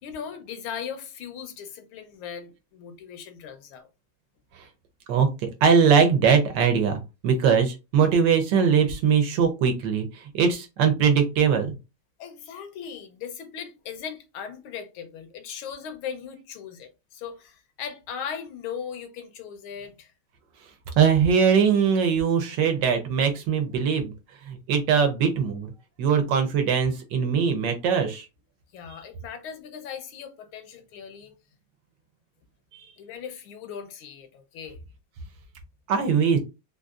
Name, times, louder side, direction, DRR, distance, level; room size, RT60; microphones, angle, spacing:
voice 1, 0.0-3.9 12.2-20.1 28.7-31.3 33.0-34.8, left 7 dB, 85° left, 1.6 m, -38 dB
voice 2, 5.1-11.7 21.0-24.1 24.4-25.7 26.0-28.3 32.7-32.9 35.9-36.4, right 6 dB, 70° right, 1.2 m, -21 dB
3.9 x 2.5 x 2.3 m
omnidirectional pair, 2.2 m